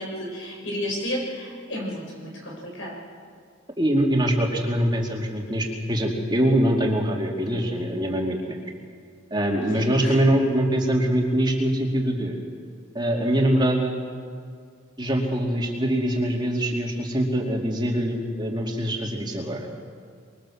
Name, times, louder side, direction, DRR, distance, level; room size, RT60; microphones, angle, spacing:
voice 1, 0.0-3.0 9.5-10.2, equal, 75° left, -1 dB, 6.5 m, -32 dB
voice 2, 3.8-8.6 9.3-12.4 12.9-13.9 15.0-19.7, right 1 dB, 20° right, 0 dB, 2.6 m, -23 dB
25.5 x 22.5 x 7.1 m, 2.1 s
head